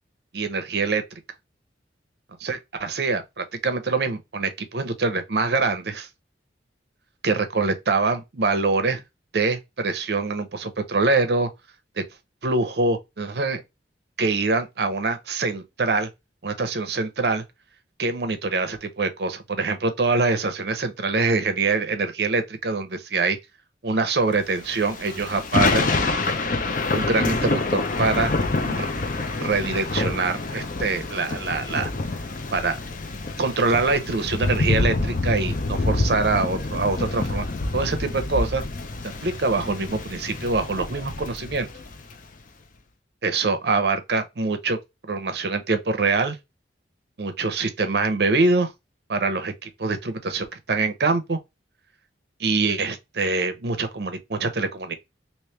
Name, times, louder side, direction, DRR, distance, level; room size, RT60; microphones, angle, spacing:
voice 1, 0.3-1.0 2.4-6.1 7.2-9.0 9.3-11.5 12.0-12.1 12.4-13.6 14.2-16.1 16.4-17.4 18.0-23.4 23.8-25.9 26.9-28.3 28.6-28.9 29.4-31.9 32.5-32.8 33.4-38.6 39.2-41.7 43.2-44.8 45.0-46.4 47.2-48.7 49.1-51.4 52.4-55.0, right 3 dB, 60° right, 0.7 m, -24 dB
Thunder / Rain, 24.6-42.2, left 2 dB, 45° left, 0.6 m, -27 dB
3.1 x 2.8 x 3.2 m
head